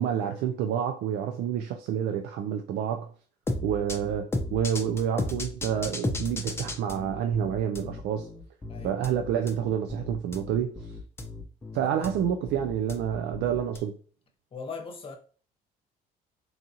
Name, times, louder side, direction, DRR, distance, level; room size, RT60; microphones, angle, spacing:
voice 1, 0.0-3.1 3.6-8.3 8.8-10.8 11.7-13.9, right 9 dB, 80° right, 0.4 m, -28 dB
sound 1, 3.5-13.8, left 2 dB, 15° left, 0.5 m, -34 dB
voice 2, 8.7-9.0 11.8-12.2 14.5-15.2, left 5 dB, 35° left, 0.9 m, -40 dB
4.0 x 2.4 x 2.7 m
cardioid pair, 110°, 17 cm